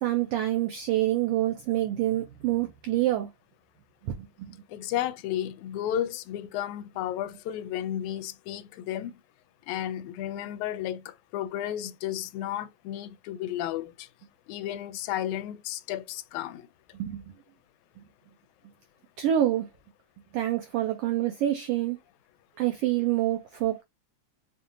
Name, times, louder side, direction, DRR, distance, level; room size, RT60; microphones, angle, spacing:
voice 1, 0.0-3.3 4.0-4.6 16.9-17.3 19.2-19.7 20.3-22.0 22.6-23.8, right 13 dB, 85° right, 1.3 m, -27 dB
voice 2, 4.7-9.2 9.7-14.1 14.5-16.7, left 11 dB, 85° left, 1.9 m, -33 dB
5.1 x 2.6 x 2.6 m
omnidirectional pair, 3.3 m